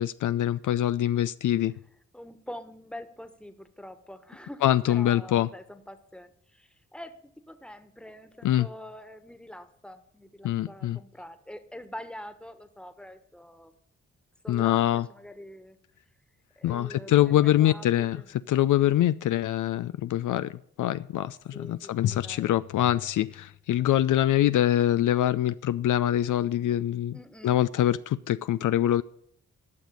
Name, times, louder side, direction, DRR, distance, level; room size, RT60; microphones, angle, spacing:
voice 1, 0.0-1.7 4.6-5.5 8.4-8.7 10.4-11.0 14.5-15.1 16.6-18.2 18.5-27.2 27.4-29.0, left 12 dB, 70° left, 0.5 m, -24 dB
voice 2, 2.1-13.7 14.4-15.8 16.6-18.3 21.5-22.6 27.1-27.6, left 1 dB, 5° left, 1.4 m, -45 dB
12.0 x 6.3 x 8.4 m
supercardioid pair, 50°, 32 cm